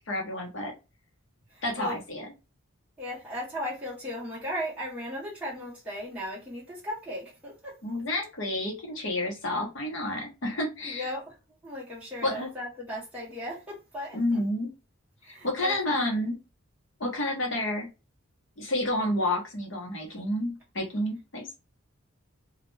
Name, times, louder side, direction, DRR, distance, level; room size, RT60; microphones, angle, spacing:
voice 1, 0.1-0.7 1.6-2.3 7.8-11.1 12.2-12.5 14.1-14.7 15.2-16.4 17.0-17.9 18.6-21.4, left 1 dB, 60° left, 0.9 m, -30 dB
voice 2, 1.5-2.0 3.0-7.8 10.8-11.3 11.6-14.4 15.2-15.7, equal, 5° right, 0.7 m, -36 dB
2.3 x 2.1 x 3.1 m
head